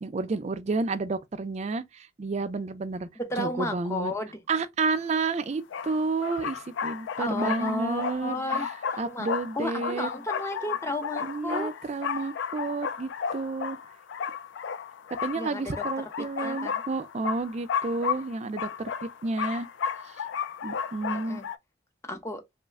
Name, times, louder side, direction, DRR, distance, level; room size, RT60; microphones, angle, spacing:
voice 1, 0.0-3.1 3.4-4.1 4.5-8.7 9.0-10.1 11.2-13.8 15.2-19.7 20.6-21.4, right 3 dB, 40° right, 0.4 m, -31 dB
voice 2, 3.2-4.3 7.2-9.3 9.5-11.7 15.4-15.8 16.4-16.8 21.1-21.4 22.1-22.4, left 1 dB, 15° left, 0.6 m, -32 dB
sound 1, 4.9-5.0 5.7-21.6, left 7 dB, 85° left, 0.4 m, -33 dB
3.1 x 2.1 x 3.4 m
head